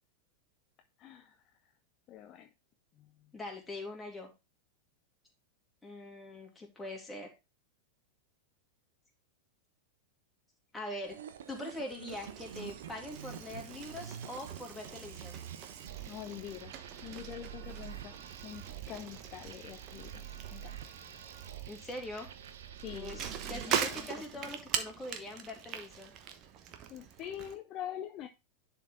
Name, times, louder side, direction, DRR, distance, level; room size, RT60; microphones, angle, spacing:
voice 1, 1.0-1.3 2.1-2.5 3.0-3.3 16.1-16.8 17.0-20.2 20.5-20.9 22.8-24.1 24.3-24.4 26.9-28.3, left 10 dB, 35° left, 0.7 m, -45 dB
voice 2, 3.3-4.3 5.8-7.3 10.7-11.2 11.5-15.4 21.7-22.3 22.9-26.1, left 1 dB, 10° left, 2.8 m, -43 dB
sound 1, 11.0-24.2, right 9 dB, 60° right, 0.9 m, -47 dB
Bicycle, 12.1-27.6, right 8 dB, 35° right, 1.1 m, -42 dB
10.5 x 4.5 x 3.6 m
figure-of-eight pair, 90°, 0 cm